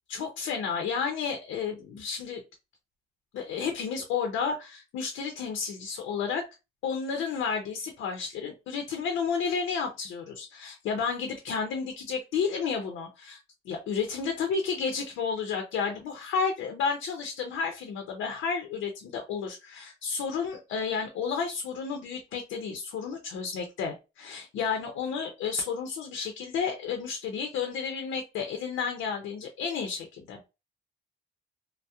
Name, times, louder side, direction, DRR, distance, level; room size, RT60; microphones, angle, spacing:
voice 1, 0.1-2.4 3.3-6.4 6.8-13.4 13.7-30.5, left 6 dB, 85° left, 4 dB, 0.6 m, -31 dB
2.7 x 2.0 x 2.2 m, 0.27 s
cardioid pair, 90°, 20 cm